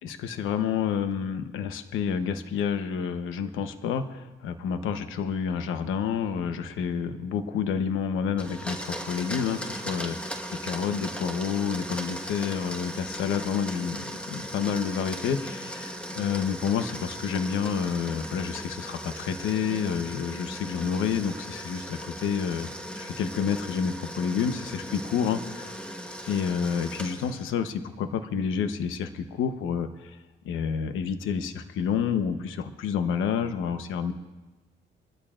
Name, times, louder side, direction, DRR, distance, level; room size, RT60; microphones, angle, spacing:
voice 1, 0.0-10.2 10.5-22.7 23.0-25.7 26.2-30.2 30.4-34.1, left 7 dB, 90° left, 9 dB, 1.0 m, -29 dB
Domestic sounds home sounds, 8.4-27.6, equal, 5° left, 1.4 m, -38 dB
23.5 x 13.0 x 2.5 m, 1.2 s
cardioid pair, 90°, 20 cm